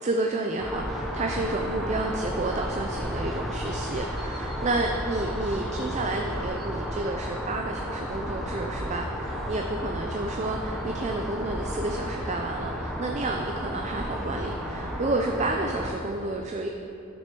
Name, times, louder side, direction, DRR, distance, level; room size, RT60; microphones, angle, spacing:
voice 1, 0.0-16.7, right 2 dB, 35° right, 3 dB, 0.5 m, -30 dB
sound 1, 0.6-15.9, equal, ahead, 0.9 m, -33 dB
12.5 x 6.2 x 4.6 m, 2.7 s
head